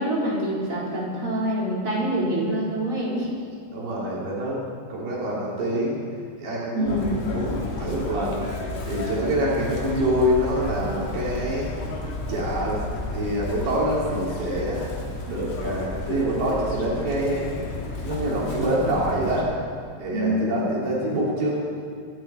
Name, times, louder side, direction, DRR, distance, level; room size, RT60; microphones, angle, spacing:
voice 1, 0.0-3.3 6.7-7.0 20.1-20.6, right 1 dB, 20° right, -7 dB, 4.4 m, -25 dB
voice 2, 3.7-4.6 4.9-6.0 6.4-8.5 8.9-11.7 12.3-12.8 13.1-14.9 15.3-17.5 18.0-19.5 20.0-21.5, right 1 dB, 75° right, -5 dB, 5.2 m, -26 dB
Chirp tweet, 6.9-19.4, left 2 dB, 75° left, 4.4 m, -32 dB
26.5 x 12.0 x 4.4 m, 2.3 s
omnidirectional pair, 4.6 m